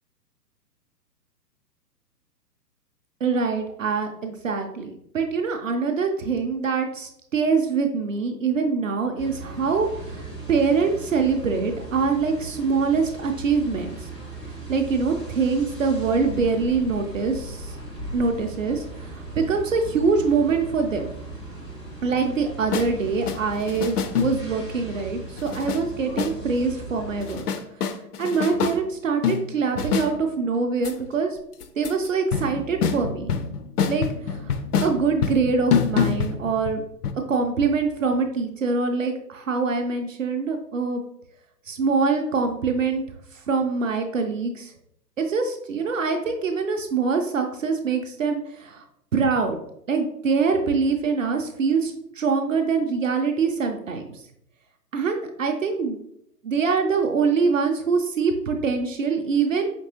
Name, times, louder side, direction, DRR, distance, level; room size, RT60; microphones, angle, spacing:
voice 1, 3.2-10.2 10.5-14.1 14.7-17.8 18.1-21.1 22.0-27.4 28.2-31.4 31.8-33.3 33.9-34.5 34.8-36.8 37.3-41.0 41.7-43.0 43.5-44.7 45.2-48.8 49.1-49.6 49.9-54.2 54.9-56.0 56.4-59.7, right 5 dB, 55° right, 4 dB, 0.5 m, -24 dB
sound 1, 9.2-27.4, right 2 dB, 20° left, 0.4 m, -38 dB
sound 2, 22.7-22.9 23.3-24.6 25.4-25.8 26.2-26.4 27.2-28.8 29.2-30.1 30.8-30.9 31.6-32.1 32.3-36.8 37.0-37.1, left 6 dB, 65° left, 0.6 m, -26 dB
5.2 x 2.9 x 2.7 m, 0.75 s
figure-of-eight pair, 125°, 50 cm